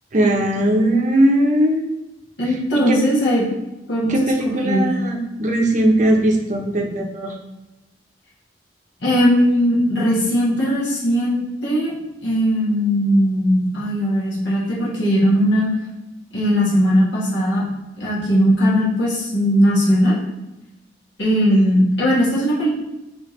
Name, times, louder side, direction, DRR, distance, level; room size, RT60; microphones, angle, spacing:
voice 1, 0.1-1.9 2.9-3.0 4.0-7.4 21.5-21.7, right 1 dB, 40° right, 2 dB, 0.6 m, -19 dB
voice 2, 2.4-3.4 3.9-4.1 4.4-4.9 9.0-11.9 12.2-15.7 16.3-17.6 18.0-20.1 21.2-22.7, equal, 75° left, -7 dB, 1.5 m, -18 dB
4.3 x 3.4 x 3.2 m, 1.0 s
head